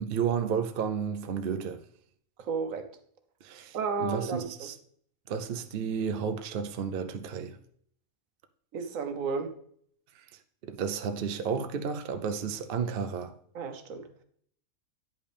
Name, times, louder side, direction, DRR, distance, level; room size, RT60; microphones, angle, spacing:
voice 1, 0.0-1.8 3.4-4.8 5.3-7.6 10.1-10.2 10.6-13.3, right 6 dB, 55° right, 0.7 m, -32 dB
voice 2, 2.5-2.8 3.7-4.4 8.7-9.5 13.5-14.0, right 5 dB, 80° right, 1.2 m, -32 dB
9.5 x 5.3 x 3.4 m
omnidirectional pair, 1.4 m